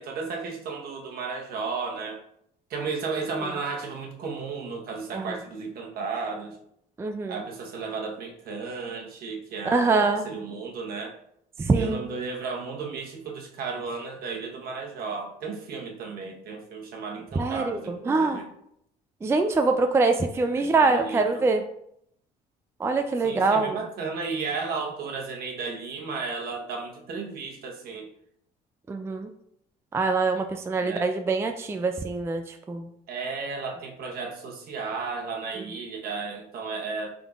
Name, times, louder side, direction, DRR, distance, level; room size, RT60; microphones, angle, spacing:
voice 1, 0.0-2.2 2.7-6.6 7.3-11.2 11.7-18.5 20.6-21.5 23.2-28.1 30.8-31.1 33.1-37.1, right 4 dB, 65° right, 1 dB, 1.0 m, -34 dB
voice 2, 7.0-7.4 9.7-10.2 11.7-12.0 17.4-17.8 18.1-18.4 19.2-21.6 22.8-23.8 28.9-29.3 29.9-32.9, right 3 dB, 15° right, 6 dB, 0.3 m, -24 dB
5.2 x 3.7 x 2.4 m, 0.73 s
cardioid pair, 110°, 17 cm